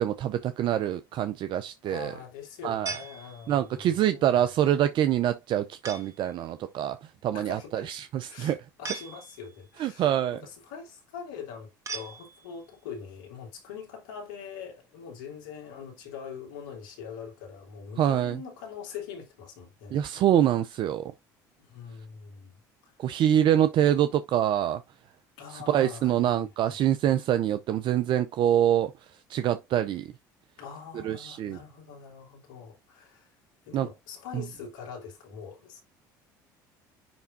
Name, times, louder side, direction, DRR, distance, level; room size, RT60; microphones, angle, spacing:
voice 1, 0.0-2.1 2.6-3.0 3.5-7.0 7.2-8.6 9.8-10.4 18.0-18.4 19.9-21.1 23.0-24.8 25.5-28.9 29.3-30.1 30.9-31.6 33.7-33.9 34.3-34.4, right 11 dB, 55° right, 0.6 m, -25 dB
voice 2, 1.8-4.5 7.3-7.9 8.3-20.0 21.6-23.1 25.4-26.8 30.6-33.3 33.6-35.8, left 7 dB, 80° left, 3.3 m, -43 dB
sound 1, 2.9-3.8 5.8-6.3 8.8-9.7 11.9-12.7, right 4 dB, 30° right, 1.8 m, -40 dB
10.5 x 3.5 x 2.6 m
hypercardioid pair, 70°, 10 cm